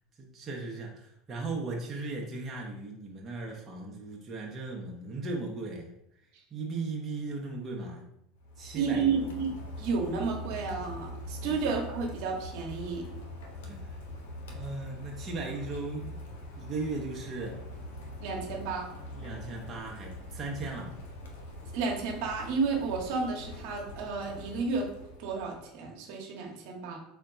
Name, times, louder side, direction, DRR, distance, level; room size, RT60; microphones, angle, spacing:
voice 1, 0.2-5.9 6.5-8.0 8.6-9.3 11.4-11.6 13.7-13.9 14.5-16.2 16.6-17.6 19.1-21.0, right 3 dB, 30° right, -1 dB, 0.6 m, -37 dB
Rain, 8.4-25.7, left 1 dB, 80° left, 0.7 m, -43 dB
voice 2, 8.7-13.1 18.2-18.9 21.7-24.9 25.2-27.0, right 4 dB, 65° right, 0 dB, 0.8 m, -32 dB
3.7 x 2.2 x 3.5 m, 0.80 s
hypercardioid pair, 95°, 0 cm